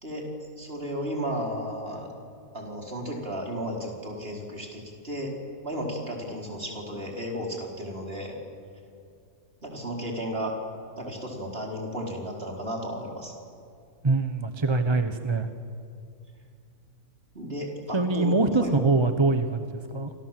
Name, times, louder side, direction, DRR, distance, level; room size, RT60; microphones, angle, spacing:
voice 1, 0.6-2.1 2.5-5.3 5.6-8.3 9.6-10.6 11.0-13.3 17.3-18.7, equal, 40° right, 0 dB, 4.8 m, -34 dB
voice 2, 14.0-15.5 17.9-20.1, right 3 dB, 20° right, 8 dB, 0.9 m, -24 dB
29.0 x 26.0 x 7.7 m, 2.4 s
omnidirectional pair, 1.6 m